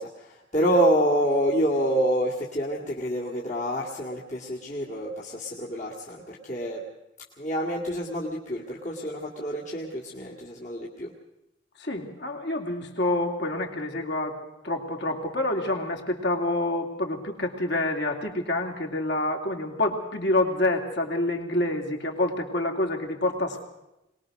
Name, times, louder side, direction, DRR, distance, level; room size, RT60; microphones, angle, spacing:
voice 1, 0.0-6.8 7.4-11.1, equal, 40° left, -4 dB, 2.0 m, -27 dB
voice 2, 11.8-14.4 14.6-23.6, left 2 dB, 60° left, 2 dB, 2.9 m, -27 dB
22.5 x 20.0 x 6.4 m, 0.91 s
head